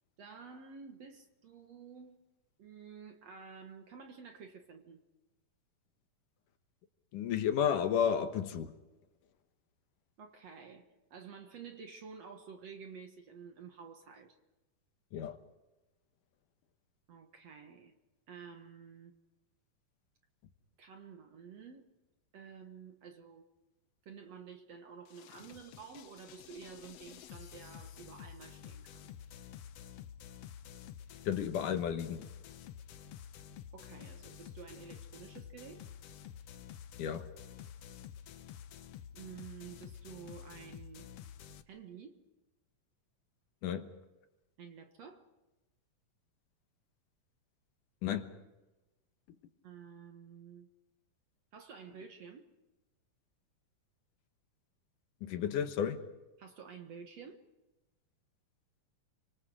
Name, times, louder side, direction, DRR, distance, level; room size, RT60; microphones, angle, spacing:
voice 1, 0.2-2.2 2.6-5.0 10.2-14.4 17.1-17.9 18.3-19.1 20.8-21.8 22.3-23.5 24.1-29.1 33.7-35.9 39.1-41.1 41.7-42.2 44.6-45.3 49.6-50.7 51.5-52.5 56.4-57.4, right 6 dB, 55° right, 2.2 m, -51 dB
voice 2, 7.1-8.7 15.1-15.4 31.3-32.3 37.0-37.3 43.6-43.9 48.0-48.3 55.2-56.0, left 8 dB, 70° left, 2.6 m, -32 dB
sound 1, 25.0-41.6, left 9 dB, 85° left, 1.3 m, -50 dB
30.0 x 25.5 x 4.9 m
omnidirectional pair, 4.2 m